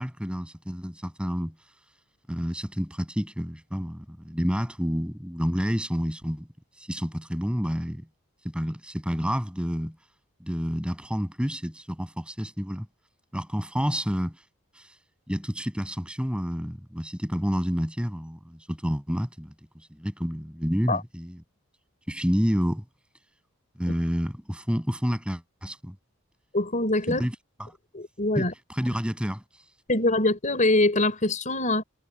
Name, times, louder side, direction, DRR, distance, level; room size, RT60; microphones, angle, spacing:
voice 1, 0.0-1.6 2.3-6.5 6.8-8.1 8.4-10.0 10.4-12.9 13.3-14.4 14.8-14.9 15.3-21.4 22.1-22.8 23.8-26.0 27.2-27.7 28.3-29.4, equal, 5° right, 6.9 m, -29 dB
voice 2, 26.5-27.2 27.9-28.5 29.9-31.8, left 2 dB, 35° left, 4.3 m, -23 dB
head